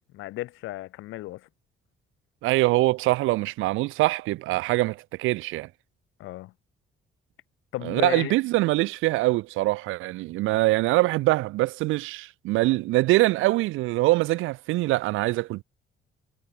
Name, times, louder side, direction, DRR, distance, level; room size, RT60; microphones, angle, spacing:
voice 1, 0.1-1.5 6.2-6.5 7.7-8.3, left 17 dB, 90° left, 0.9 m, -34 dB
voice 2, 2.4-5.7 7.8-15.6, right 19 dB, 90° right, 0.5 m, -23 dB
cardioid pair, 90°, 20 cm